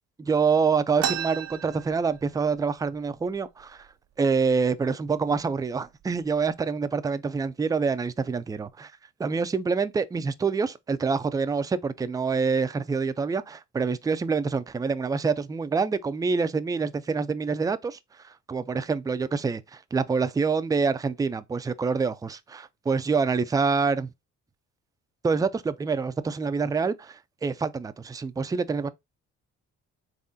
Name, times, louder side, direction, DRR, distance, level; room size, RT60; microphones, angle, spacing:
voice 1, 0.2-3.9 4.2-8.9 9.2-18.0 18.2-24.1 25.2-28.9, right 5 dB, 10° right, 0.3 m, -26 dB
sound 1, 1.0-2.6 2.9-3.0 3.3-3.9 4.5-4.7 5.4-5.6 6.0-6.5, right 9 dB, 60° right, 0.6 m, -33 dB
4.1 x 3.7 x 2.6 m
cardioid pair, 90°, 30 cm